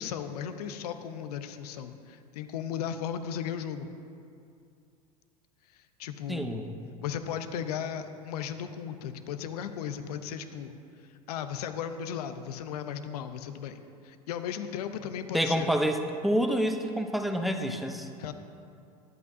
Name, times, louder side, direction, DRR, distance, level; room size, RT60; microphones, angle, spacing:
voice 1, 0.0-3.9 5.7-6.6 7.0-10.7 11.0-15.7 18.2-18.3, left 8 dB, 70° left, 9 dB, 0.8 m, -36 dB
voice 2, 6.3-6.7 15.3-16.0 16.2-18.1, equal, ahead, 5 dB, 0.9 m, -28 dB
22.5 x 8.5 x 2.8 m, 2.5 s
hypercardioid pair, 85°, 20 cm